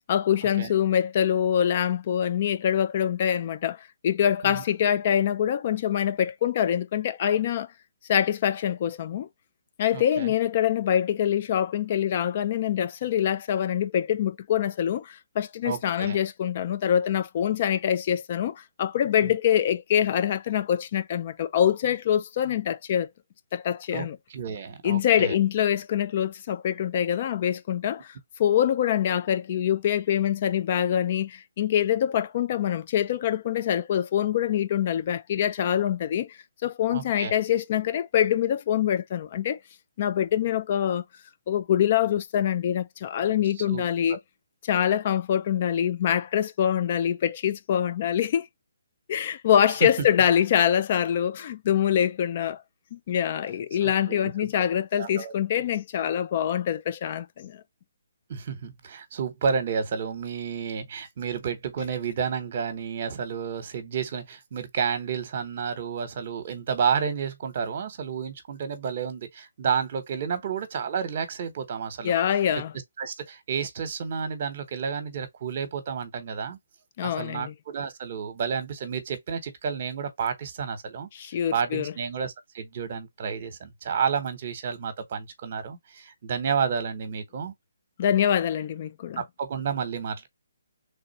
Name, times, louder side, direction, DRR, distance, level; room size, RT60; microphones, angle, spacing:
voice 1, 0.1-7.7 8.1-9.3 9.8-23.1 23.5-24.2 24.8-39.6 40.0-41.0 41.5-44.2 44.6-48.5 49.1-52.6 52.9-57.6 72.0-72.7 77.0-77.5 81.1-81.9 88.0-89.2, left 10 dB, 35° left, 0.4 m, -25 dB
voice 2, 9.9-10.3 15.6-16.2 19.2-19.3 23.9-25.3 36.9-37.3 43.7-43.8 53.8-54.7 55.0-55.3 58.3-72.1 73.0-76.6 77.0-81.1 81.5-87.5 89.2-90.3, right 6 dB, 40° right, 1.0 m, -31 dB
3.4 x 2.4 x 4.1 m
hypercardioid pair, 160°, 0 cm